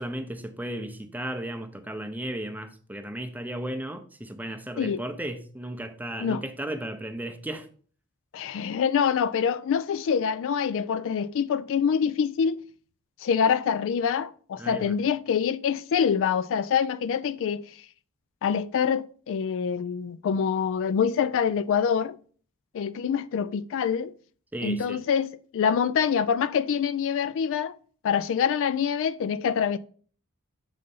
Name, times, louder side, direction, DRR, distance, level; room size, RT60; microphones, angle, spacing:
voice 1, 0.0-7.7 14.6-14.9 24.5-25.0, right 1 dB, 10° right, 0.6 m, -35 dB
voice 2, 8.3-12.6 13.2-17.8 18.4-22.2 22.7-24.1 24.6-27.7 28.0-29.8, left 7 dB, 60° left, 0.3 m, -25 dB
6.4 x 4.0 x 5.4 m
head